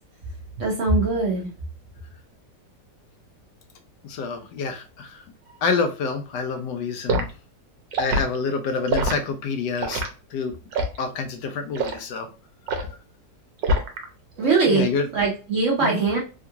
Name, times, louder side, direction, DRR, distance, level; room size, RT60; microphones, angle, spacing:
voice 1, 0.6-1.5 14.4-14.9 15.1-16.2, right 4 dB, 50° right, -2 dB, 1.0 m, -21 dB
voice 2, 4.0-5.2 5.6-7.3 8.0-10.0 10.3-10.5 11.0-12.3 12.8-12.9 14.7-15.1 15.8-16.0, left 4 dB, 75° left, 7 dB, 1.2 m, -27 dB
Liquid, 7.1-7.3 7.9-8.3 8.9-9.2 9.8-10.1 10.7-11.0 11.7-12.0 12.7-12.9 13.6-14.0 14.4-14.7, right 1 dB, 80° right, 1.3 m, -24 dB
3.6 x 2.3 x 2.7 m, 0.33 s
omnidirectional pair, 2.0 m